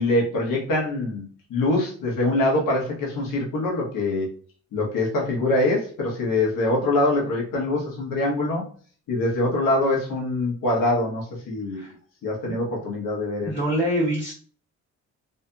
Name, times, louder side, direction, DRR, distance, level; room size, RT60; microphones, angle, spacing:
voice 1, 0.0-4.3 4.7-8.6 9.1-11.8 12.2-13.5, left 2 dB, 80° left, -3 dB, 1.2 m, -24 dB
voice 2, 13.4-14.3, equal, 35° left, -7 dB, 1.3 m, -24 dB
2.8 x 2.5 x 2.3 m, 0.43 s
supercardioid pair, 65°, 32 cm